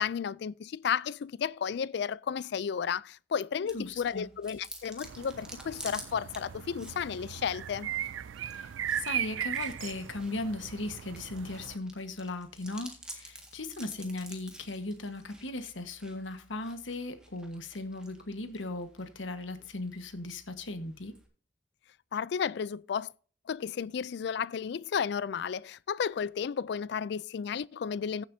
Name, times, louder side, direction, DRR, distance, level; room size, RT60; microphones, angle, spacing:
voice 1, 0.0-7.9 22.1-23.1 23.5-28.2, left 7 dB, 60° left, 0.3 m, -33 dB
voice 2, 3.7-4.3 8.4-21.1, left 2 dB, 75° left, 1.4 m, -38 dB
Chewing mastication, 3.7-21.3, right 1 dB, 5° right, 1.8 m, -51 dB
sound 1, 5.0-11.8, right 10 dB, 80° right, 0.4 m, -38 dB
15.5 x 7.5 x 2.7 m
head